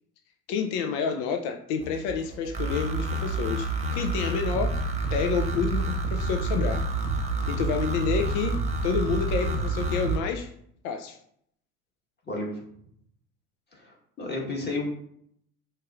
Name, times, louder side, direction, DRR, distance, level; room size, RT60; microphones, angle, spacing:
voice 1, 0.5-4.7 5.1-6.8 7.5-8.6 8.8-10.5 10.8-11.2, left 6 dB, 70° left, 5 dB, 0.6 m, -29 dB
sound 1, 1.8-10.2, right 3 dB, 15° right, 0.9 m, -28 dB
voice 2, 12.3-12.6 13.7-14.9, left 2 dB, 25° left, -1 dB, 1.4 m, -32 dB
4.5 x 3.0 x 2.4 m, 0.68 s
hypercardioid pair, 80°, 42 cm